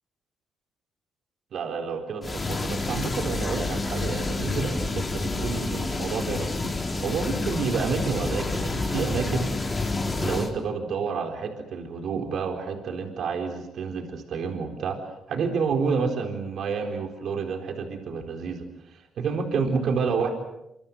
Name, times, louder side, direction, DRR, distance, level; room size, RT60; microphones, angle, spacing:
voice 1, 1.5-9.5 10.2-15.0 15.3-20.3, right 5 dB, 65° right, 5 dB, 4.1 m, -29 dB
sound 1, 2.2-10.5, left 3 dB, 25° left, 4.4 m, -29 dB
26.5 x 26.0 x 7.8 m, 0.86 s
cardioid pair, 90°, 0 cm